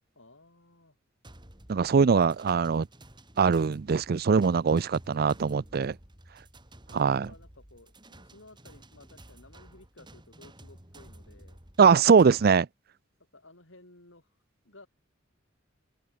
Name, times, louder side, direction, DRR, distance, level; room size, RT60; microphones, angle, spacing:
voice 1, 0.2-1.0 6.9-11.6 13.3-14.3 14.6-14.9, left 2 dB, 75° left, 7.8 m, -55 dB
sound 1, 1.2-12.5, right 1 dB, 25° right, 4.5 m, -52 dB
voice 2, 1.7-2.9 3.4-6.0 6.9-7.3 11.8-12.7, right 5 dB, 50° right, 0.4 m, -22 dB
open air
head